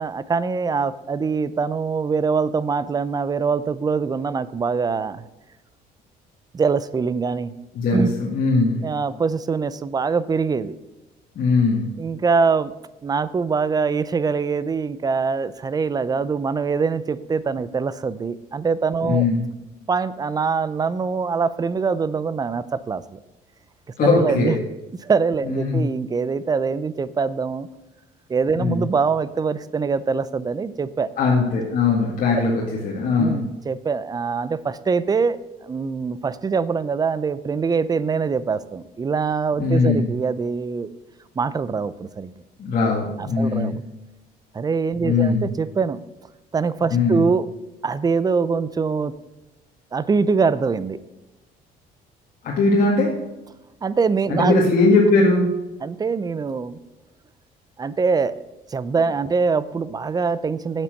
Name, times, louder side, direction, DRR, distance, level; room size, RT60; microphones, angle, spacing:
voice 1, 0.0-5.2 6.5-7.5 7.9-8.1 8.8-10.8 12.0-12.7 13.0-19.3 19.9-23.2 24.0-24.6 25.0-27.7 28.3-31.1 33.2-40.9 41.4-42.3 43.2-43.8 44.5-46.0 46.5-47.5 47.8-49.1 49.9-51.0 53.8-54.6 55.8-56.8 57.8-58.4 58.7-60.8, right 5 dB, 25° right, 16 dB, 0.5 m, -23 dB
voice 2, 7.7-8.8 11.4-11.9 19.0-19.4 24.0-24.6 25.5-25.9 28.5-28.8 31.2-33.5 39.6-40.1 42.6-43.8 45.0-45.5 46.9-47.3 52.4-53.1 54.3-55.5, left 3 dB, 55° left, -3 dB, 1.9 m, -20 dB
8.3 x 7.5 x 6.4 m, 1.0 s
cardioid pair, 110°, 17 cm